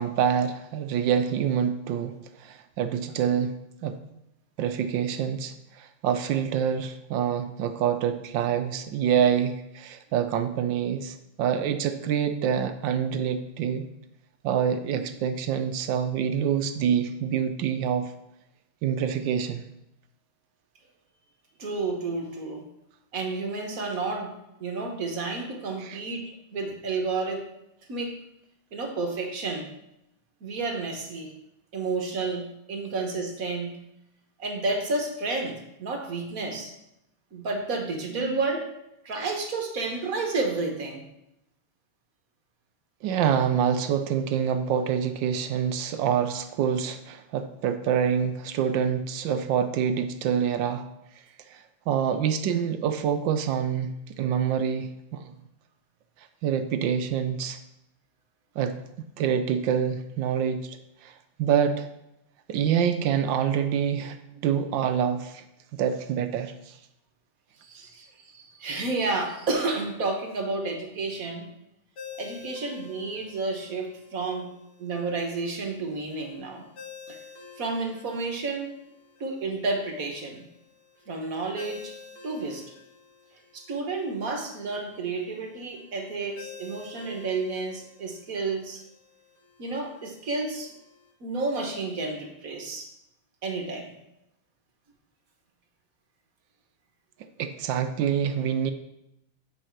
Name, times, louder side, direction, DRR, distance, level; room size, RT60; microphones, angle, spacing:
voice 1, 0.0-2.1 2.4-3.5 3.8-4.0 4.6-13.8 14.4-18.1 18.8-19.6 25.8-26.0 43.0-50.8 51.5-55.3 56.4-57.6 58.6-58.8 59.2-60.8 61.0-61.1 61.4-61.9 62.5-64.2 64.4-65.4 65.7-66.7 97.4-98.7, right 8 dB, 75° right, 9 dB, 1.2 m, -26 dB
voice 2, 21.6-22.6 23.1-24.3 24.6-27.5 27.9-28.2 28.7-29.7 30.4-31.3 31.7-33.7 34.4-36.7 37.3-38.7 39.0-41.0 64.3-64.4 67.6-71.5 72.2-74.5 74.8-76.6 77.1-77.2 77.6-78.7 79.2-80.5 81.1-81.9 82.2-82.7 83.5-88.8 89.6-90.7 91.2-92.9 93.4-93.9, right 3 dB, 45° right, 2 dB, 1.4 m, -31 dB
Ringtone, 72.0-91.1, left 6 dB, 50° left, 2.2 m, -50 dB
8.9 x 5.8 x 4.6 m, 0.84 s
omnidirectional pair, 2.3 m